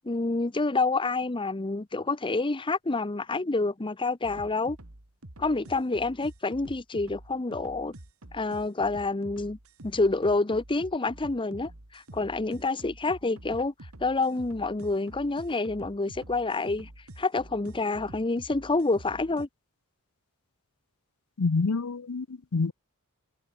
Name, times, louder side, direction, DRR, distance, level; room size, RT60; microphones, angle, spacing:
voice 1, 0.0-4.8 5.4-7.9 8.3-9.6 9.8-13.7 14.0-16.9 17.2-19.5, left 3 dB, 25° left, 0.7 m, -28 dB
sound 1, 4.2-19.5, right 1 dB, 75° right, 2.5 m, -47 dB
voice 2, 21.4-22.7, left 4 dB, 80° left, 0.7 m, -27 dB
head